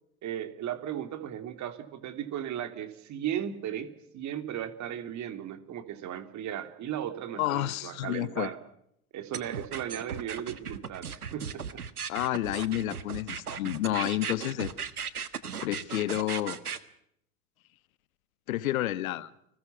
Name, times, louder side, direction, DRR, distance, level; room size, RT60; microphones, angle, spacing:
voice 1, 0.2-8.6 9.1-11.1 11.3-11.8, right 10 dB, 40° right, 10 dB, 3.1 m, -36 dB
voice 2, 7.4-8.5 12.1-14.7 15.6-16.6 18.5-19.3, left 14 dB, 65° left, 17 dB, 1.4 m, -30 dB
sound 1, 9.3-16.8, right 7 dB, 90° right, 1.4 m, -37 dB
29.5 x 20.5 x 5.9 m, 0.73 s
hypercardioid pair, 85°, 44 cm